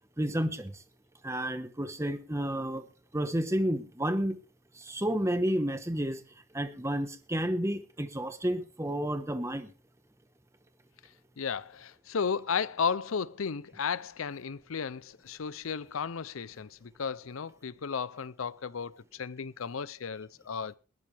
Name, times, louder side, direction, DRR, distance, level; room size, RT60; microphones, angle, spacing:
voice 1, 0.2-0.7 1.2-2.8 3.1-4.4 4.8-6.2 6.5-9.7, equal, 15° right, 1.2 m, -31 dB
voice 2, 11.4-20.7, left 6 dB, 85° left, 0.6 m, -34 dB
20.5 x 12.0 x 3.4 m
head